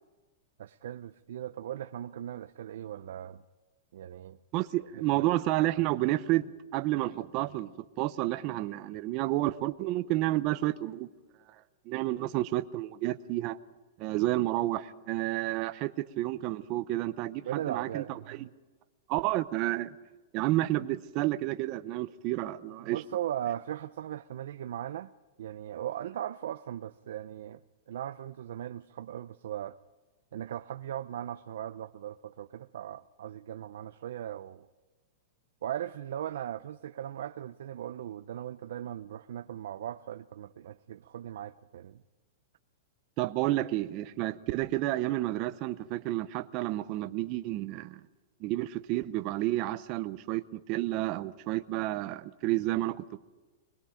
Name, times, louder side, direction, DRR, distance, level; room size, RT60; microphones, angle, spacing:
voice 1, 0.6-3.4 3.9-4.4 4.8-5.3 17.4-18.5 22.8-25.1 25.4-27.6 27.9-29.8 30.3-34.7 35.6-42.0, right 11 dB, 70° right, 0.6 m, -38 dB
voice 2, 4.5-6.5 6.7-7.7 8.0-11.1 11.9-13.6 14.0-18.4 19.1-19.9 20.3-23.0 43.2-48.0 48.4-53.2, right 16 dB, 35° right, 0.8 m, -30 dB
25.0 x 21.0 x 5.1 m
supercardioid pair, 160°, 0 cm